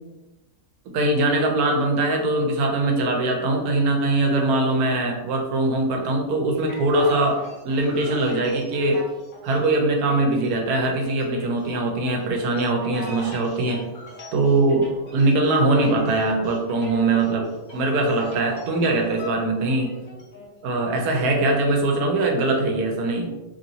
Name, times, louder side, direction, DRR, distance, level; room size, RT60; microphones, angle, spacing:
voice 1, 0.9-9.0 9.4-13.9 14.3-19.9 20.6-23.3, right 2 dB, 75° right, 2 dB, 1.1 m, -22 dB
sound 1, 6.6-19.3 19.6-21.5, left 1 dB, 45° left, 0.8 m, -41 dB
3.0 x 2.7 x 2.7 m, 1.1 s
omnidirectional pair, 1.7 m